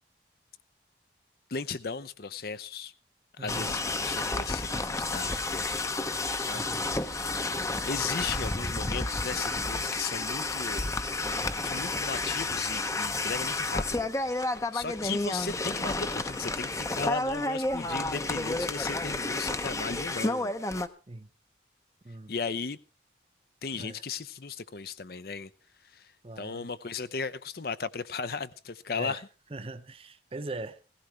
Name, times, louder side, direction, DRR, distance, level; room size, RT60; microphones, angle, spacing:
voice 1, 1.5-2.9 3.4-5.9 6.4-7.2 7.8-10.9 11.6-20.5 22.3-22.8 23.6-25.5 25.8-29.3, left 5 dB, 55° left, 0.6 m, -36 dB
voice 2, 3.4-3.7 6.5-6.9 21.1-21.3 22.0-22.3 23.8-24.0 26.2-26.7 29.0-29.2 29.5-30.8, right 2 dB, 30° right, 0.7 m, -40 dB
sound 1, 3.5-20.9, left 2 dB, 15° left, 0.7 m, -31 dB
17.0 x 15.5 x 3.2 m
head